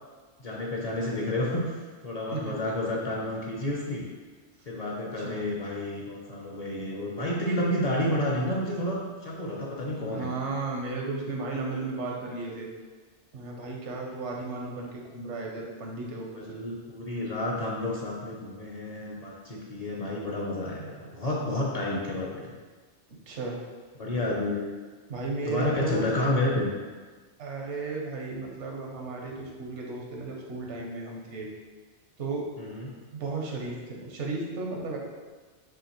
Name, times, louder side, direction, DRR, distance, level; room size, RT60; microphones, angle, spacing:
voice 1, 0.4-1.8 2.0-4.0 4.7-10.3 16.4-22.5 24.0-24.7 25.5-26.7 32.7-32.8, left 1 dB, 45° left, -3 dB, 0.6 m, -30 dB
voice 2, 2.3-2.6 4.6-4.7 5.1-5.4 10.1-12.7 13.3-16.6 23.1-23.6 25.1-26.1 27.4-31.5 32.2-32.5 33.1-35.0, right 3 dB, 85° right, -1 dB, 1.1 m, -34 dB
6.2 x 2.7 x 3.0 m, 1.4 s
omnidirectional pair, 1.2 m